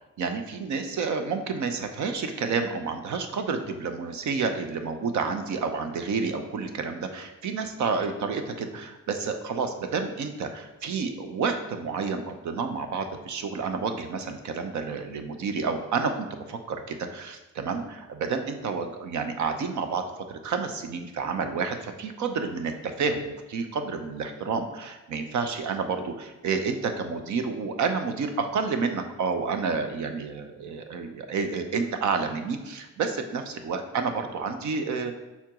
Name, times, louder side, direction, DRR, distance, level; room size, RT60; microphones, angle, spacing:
voice 1, 0.2-35.1, right 5 dB, 70° right, 7 dB, 0.8 m, -30 dB
5.8 x 4.5 x 3.7 m, 1.1 s
cardioid pair, 90°, 30 cm